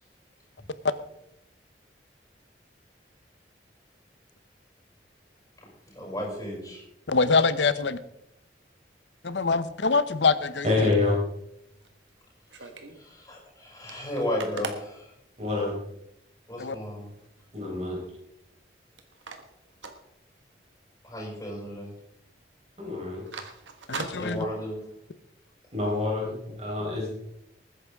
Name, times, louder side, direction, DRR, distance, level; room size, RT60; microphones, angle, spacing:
voice 1, 5.9-6.8 13.0-15.1 16.5-17.1 21.0-21.9 24.2-24.8, left 1 dB, 15° left, -3 dB, 5.8 m, -34 dB
voice 2, 7.1-8.0 9.2-10.9 16.6-16.8 23.9-24.4, left 4 dB, 80° left, 14 dB, 0.8 m, -24 dB
voice 3, 10.6-11.1 15.4-15.7 17.5-18.0 22.8-23.2 25.7-27.1, left 3 dB, 35° right, -1 dB, 4.4 m, -27 dB
sound 1, 11.7-13.0 13.4-13.5 13.7-15.9 16.4-16.5 16.8-17.3 17.7-18.7 19.0-20.8 21.0-21.2 21.6-22.0 22.3-22.5 22.9-24.9, right 4 dB, 90° right, 1.6 m, -41 dB
20.5 x 9.9 x 3.6 m, 0.81 s
head